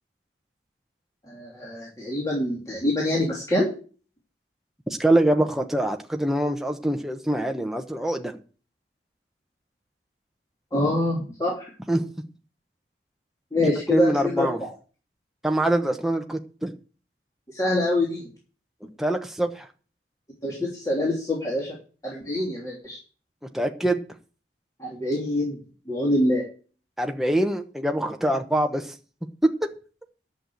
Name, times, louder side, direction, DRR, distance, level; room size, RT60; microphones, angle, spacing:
voice 1, 1.3-3.7 10.7-11.5 13.5-14.5 17.5-18.2 20.4-21.8 22.0-23.0 24.8-25.6 25.9-26.4, left 1 dB, 20° left, -4 dB, 3.0 m, -25 dB
voice 2, 5.0-8.4 11.9-12.0 13.9-14.6 15.4-16.7 19.0-19.7 23.5-24.0 27.0-28.9, right 1 dB, ahead, 4 dB, 0.9 m, -24 dB
11.0 x 6.7 x 7.7 m, 0.39 s
head